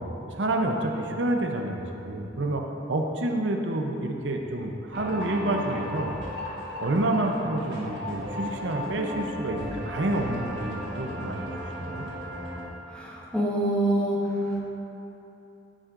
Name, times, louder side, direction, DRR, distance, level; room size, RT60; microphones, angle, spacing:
voice 1, 0.0-6.2 6.8-12.1, right 1 dB, 80° right, 2 dB, 0.7 m, -28 dB
sound 1, 4.9-12.7, left 1 dB, 65° right, 1.8 m, -35 dB
voice 2, 12.9-14.2 14.5-14.7, right 1 dB, 5° left, -6 dB, 1.5 m, -26 dB
13.0 x 7.5 x 2.5 m, 3.0 s
head